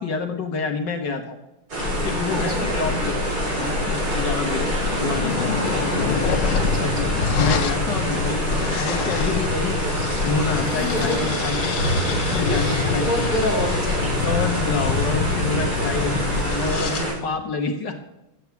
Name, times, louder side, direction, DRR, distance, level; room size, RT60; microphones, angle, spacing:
voice 1, 0.0-1.4 2.0-3.2 3.6-5.6 6.8-9.8 10.2-11.6 12.3-13.1 14.2-18.0, left 4 dB, 70° left, 6 dB, 1.7 m, -28 dB
sound 1, 1.7-17.1, right 2 dB, 70° right, 5.0 m, -26 dB
sound 2, 1.8-17.0, left 6 dB, 50° left, 1.1 m, -26 dB
voice 2, 2.3-2.8 5.6-6.2 6.6-7.1 10.6-11.3 12.3-14.4, equal, 25° right, -1 dB, 3.7 m, -29 dB
11.5 x 8.2 x 8.2 m, 0.92 s
omnidirectional pair, 2.0 m